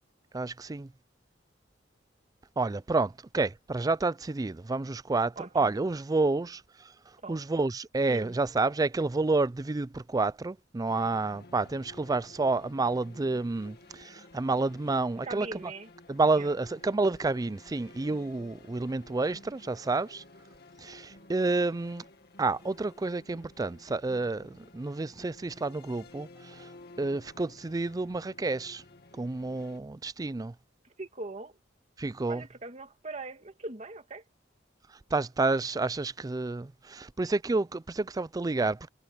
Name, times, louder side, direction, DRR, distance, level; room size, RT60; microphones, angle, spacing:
voice 1, 0.3-0.9 2.6-6.9 7.3-15.7 16.1-20.2 20.8-22.0 22.4-26.7 27.0-28.8 29.2-30.5 32.0-32.4 35.1-38.9, right 3 dB, 20° right, 0.4 m, -29 dB
voice 2, 5.4-5.7 7.2-7.4 8.1-8.3 15.2-15.9 16.3-16.6 31.0-31.6 32.3-34.2, right 3 dB, 40° right, 1.9 m, -41 dB
sound 1, 10.9-29.8, left 2 dB, 60° left, 2.2 m, -53 dB
head